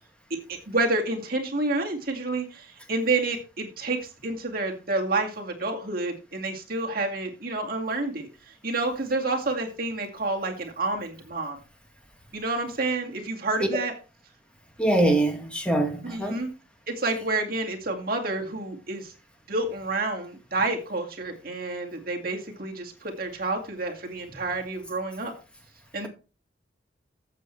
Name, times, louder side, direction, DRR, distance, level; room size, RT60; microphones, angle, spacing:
voice 1, 0.5-11.6 12.3-13.9 16.0-16.5 16.9-19.1 19.5-25.3 25.9-26.1, right 2 dB, 50° right, 2.2 m, -29 dB
voice 2, 14.8-16.4, right 1 dB, 5° left, 2.0 m, -23 dB
14.0 x 7.6 x 3.3 m
head